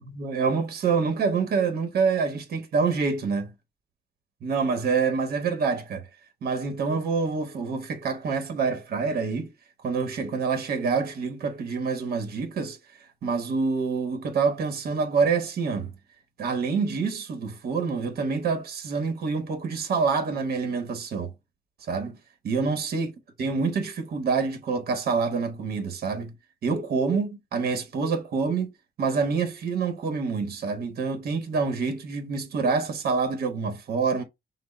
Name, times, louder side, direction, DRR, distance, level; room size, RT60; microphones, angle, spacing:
voice 1, 0.1-3.5 4.4-6.0 6.4-9.5 9.8-12.8 13.2-15.9 16.4-21.3 21.9-22.2 22.4-23.1 23.4-26.3 26.6-28.7 29.0-34.2, right 5 dB, 70° right, 1.0 m, -26 dB
6.0 x 2.0 x 4.0 m
wide cardioid pair, 150°, 16 cm